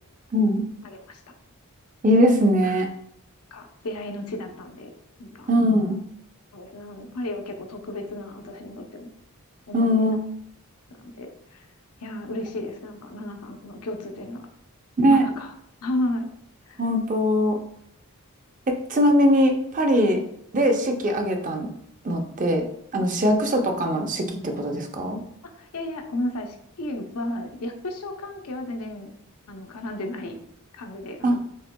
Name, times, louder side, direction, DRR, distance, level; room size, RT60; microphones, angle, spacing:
voice 1, 0.8-1.2 2.6-2.8 3.5-4.9 5.2-5.5 6.5-9.1 9.7-10.2 10.9-11.7 12.0-14.5 15.1-15.5 15.8-16.3 16.7-16.8 23.0-23.2 25.4-29.1 29.5-30.4 30.8-31.4, left 1 dB, 85° left, 4 dB, 0.7 m, -33 dB
voice 2, 2.0-2.9 5.5-6.0 9.7-10.2 15.0-15.2 16.8-17.6 18.7-20.2 20.5-21.7 22.0-22.6 22.9-25.2 31.2-31.4, equal, 35° right, 4 dB, 0.5 m, -21 dB
5.3 x 3.7 x 2.2 m, 0.73 s
head